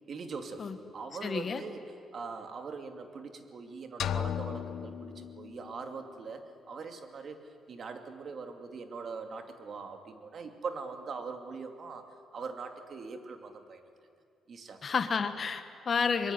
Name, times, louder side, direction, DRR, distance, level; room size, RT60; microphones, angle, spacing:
voice 1, 0.1-1.8 2.1-7.4 7.7-12.0 12.3-13.8 14.5-14.8, right 4 dB, 50° right, 5 dB, 2.7 m, -42 dB
voice 2, 1.2-1.6 14.8-16.3, left 5 dB, 40° left, 8 dB, 1.5 m, -30 dB
sound 1, 4.0-5.9, left 9 dB, 75° left, 1.0 m, -35 dB
24.0 x 22.0 x 9.7 m, 2.5 s
cardioid pair, 110°, 0 cm